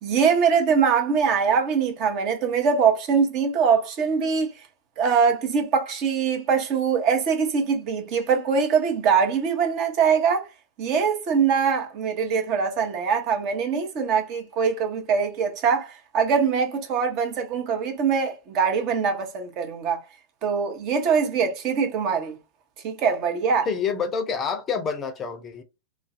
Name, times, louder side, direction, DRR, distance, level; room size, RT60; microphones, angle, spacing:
voice 1, 0.0-4.5 5.0-10.5 10.8-20.0 20.4-22.4 22.8-23.7, right 6 dB, 40° right, 0.8 m, -23 dB
voice 2, 23.7-25.6, left 6 dB, 25° left, 0.5 m, -27 dB
2.4 x 2.1 x 2.4 m
figure-of-eight pair, 90°, 0 cm